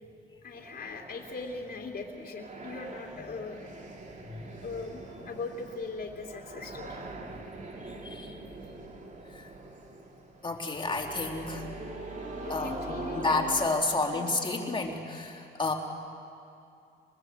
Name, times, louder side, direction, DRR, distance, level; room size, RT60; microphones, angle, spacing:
voice 1, 0.4-3.7 4.6-7.1 12.4-13.4 13.9-14.3, left 3 dB, 50° left, 0 dB, 3.1 m, -40 dB
sound 1, 0.5-13.7, right 2 dB, 40° right, 3.1 m, -43 dB
voice 2, 7.9-8.3 9.3-9.5 10.4-11.7 12.5-15.7, left 3 dB, 25° left, 1 dB, 3.5 m, -31 dB
25.5 x 21.0 x 8.0 m, 2.5 s
cardioid pair, 90°, 20 cm